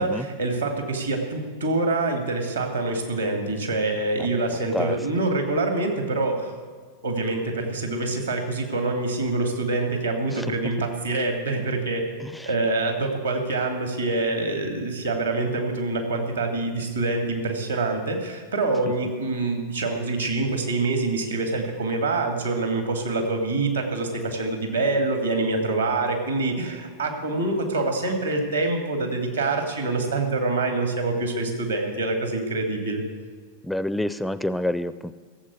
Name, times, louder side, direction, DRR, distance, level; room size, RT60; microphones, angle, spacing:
voice 1, 0.0-6.6 7.0-12.1 12.5-33.0, right 2 dB, 80° right, 4 dB, 2.4 m, -25 dB
voice 2, 33.6-35.1, left 1 dB, 5° left, 14 dB, 0.4 m, -28 dB
15.5 x 7.5 x 8.3 m, 1.6 s
figure-of-eight pair, 90°, 0 cm